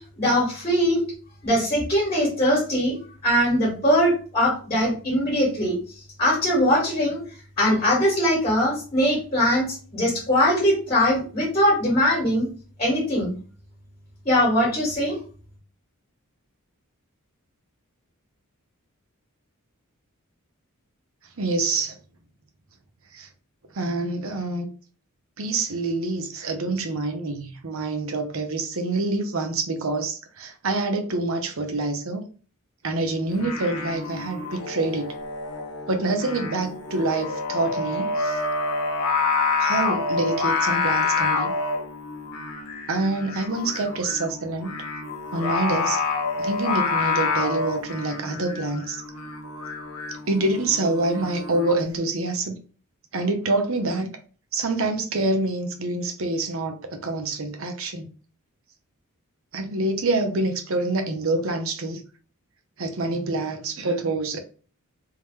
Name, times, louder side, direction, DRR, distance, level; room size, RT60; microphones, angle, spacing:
voice 1, 0.1-1.0 1.4-3.0 3.2-5.8 6.2-7.2 7.6-12.5 12.8-13.3 14.3-15.2, equal, 30° left, 1.7 m, -21 dB
voice 2, 21.4-22.0 23.1-23.3 23.7-24.7 25.4-32.3 32.8-35.1 35.9-38.4 39.6-41.5 42.9-44.7 45.3-46.0 46.4-49.0 50.1-52.5 53.1-54.1 54.5-58.1 59.5-62.0 62.8-64.4, right 2 dB, 60° right, 0.8 m, -26 dB
Singing, 33.3-51.8, left 4 dB, 90° left, 1.0 m, -28 dB
3.5 x 3.0 x 3.2 m
head